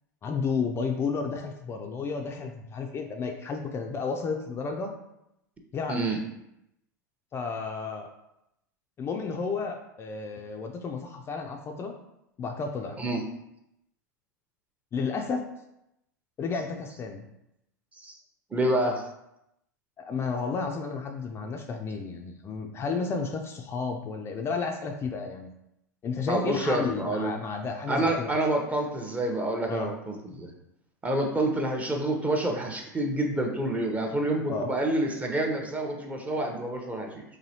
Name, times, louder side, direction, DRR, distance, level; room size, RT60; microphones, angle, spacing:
voice 1, 0.2-5.0 5.7-6.1 7.3-8.1 9.0-11.9 12.4-12.9 14.9-15.4 16.4-17.2 20.0-25.5 26.0-28.3 29.7-29.9 34.5-34.7, left 5 dB, 25° left, 3 dB, 0.4 m, -32 dB
voice 2, 5.9-6.2 13.0-13.2 18.0-18.2 18.5-19.0 26.3-27.3 27.9-30.5 31.0-37.2, right 1 dB, 15° right, 2 dB, 0.7 m, -28 dB
4.0 x 2.7 x 2.8 m, 0.84 s
figure-of-eight pair, 90°, 10 cm